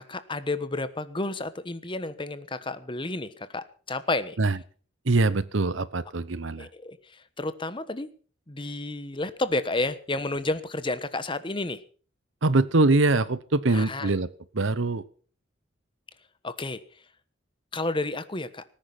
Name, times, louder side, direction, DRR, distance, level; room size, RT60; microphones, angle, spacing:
voice 1, 0.0-4.4 6.6-8.1 8.5-11.8 13.7-14.1 16.4-16.8 17.7-18.6, left 2 dB, 25° left, 13 dB, 1.2 m, -31 dB
voice 2, 5.0-6.7 12.4-14.3 14.5-15.0, right 2 dB, 70° right, 17 dB, 0.9 m, -23 dB
19.0 x 10.0 x 6.1 m, 0.42 s
head